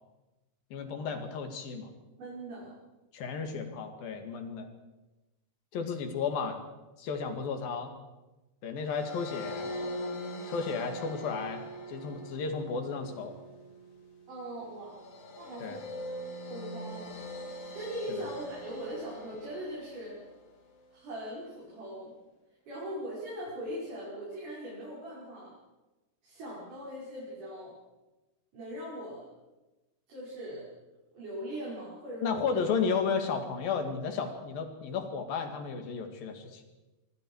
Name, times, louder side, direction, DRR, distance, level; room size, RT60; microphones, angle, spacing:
voice 1, 0.7-1.9 3.1-4.7 5.7-6.6 7.0-7.9 8.6-9.7 10.5-13.3 15.6-15.8 18.1-18.2 32.2-36.6, left 5 dB, 85° left, 6 dB, 4.0 m, -33 dB
voice 2, 2.2-2.7 14.3-15.0 15.4-15.9 16.5-17.4 17.7-20.2 20.9-22.1 22.7-25.5 26.2-27.8 28.5-29.3 30.1-30.7 31.1-32.6, equal, 65° right, -7 dB, 7.2 m, -40 dB
sound 1, 8.9-20.3, left 1 dB, 60° left, 4.1 m, -42 dB
25.5 x 23.5 x 4.8 m, 1.1 s
omnidirectional pair, 4.0 m